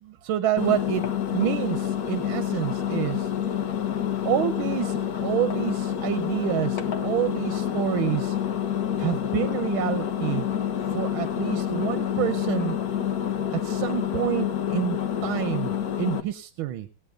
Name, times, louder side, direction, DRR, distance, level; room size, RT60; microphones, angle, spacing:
voice 1, 0.0-3.3 4.2-8.4 9.0-10.4 10.9-12.8 13.6-15.0 15.2-16.9, right 12 dB, 90° right, 11 dB, 1.6 m, -28 dB
Engine, 0.6-16.2, left 9 dB, 55° left, 1.4 m, -28 dB
18.5 x 8.4 x 3.7 m, 0.29 s
omnidirectional pair, 2.2 m